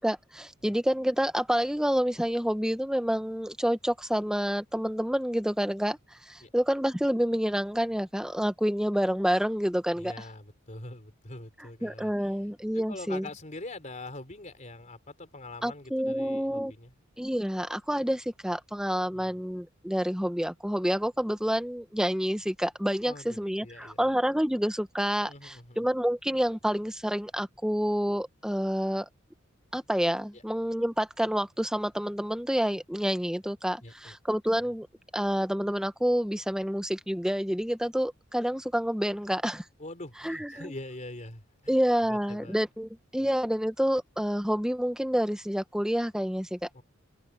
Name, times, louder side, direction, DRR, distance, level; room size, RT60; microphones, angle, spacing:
voice 1, 0.0-6.0 6.3-10.1 11.8-13.3 15.6-16.7 17.2-29.1 29.7-34.9 35.1-39.6 40.2-40.7 41.7-46.6, equal, 5° right, 1.0 m, -28 dB
voice 2, 9.9-12.4 12.7-16.9 19.1-19.4 23.0-24.1 25.2-25.8 30.3-30.4 33.8-34.2 39.8-42.6 43.2-43.3 46.7-46.8, left 2 dB, 35° left, 3.6 m, -44 dB
head